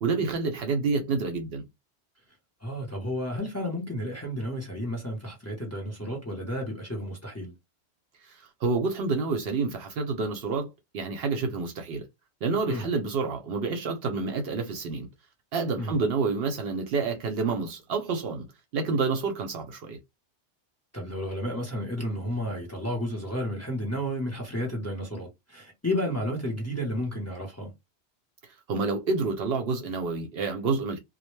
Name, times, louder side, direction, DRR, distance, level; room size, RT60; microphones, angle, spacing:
voice 1, 0.0-1.7 8.2-12.1 12.4-15.1 15.5-18.4 18.7-20.0 28.7-31.0, right 4 dB, 65° right, 0.7 m, -28 dB
voice 2, 2.6-7.5 12.7-12.9 15.8-16.0 20.9-27.7, equal, 15° left, 0.7 m, -32 dB
2.1 x 2.1 x 3.0 m
omnidirectional pair, 1.1 m